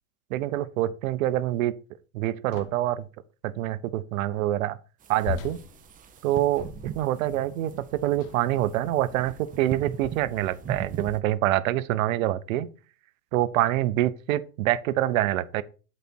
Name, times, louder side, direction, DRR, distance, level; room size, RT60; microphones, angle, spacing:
voice 1, 0.3-1.7 2.1-3.0 3.4-4.8 5.1-5.6 6.2-7.7 8.0-12.7 13.3-15.6, right 14 dB, 65° right, 0.8 m, -26 dB
sound 1, 2.5-3.0 5.2-7.2 8.1-8.6 9.4-9.6 10.5-10.9, left 8 dB, 50° left, 1.0 m, -39 dB
sound 2, 5.0-11.2, right 8 dB, 20° right, 0.7 m, -40 dB
8.1 x 4.2 x 4.4 m
hypercardioid pair, 115°, 45 cm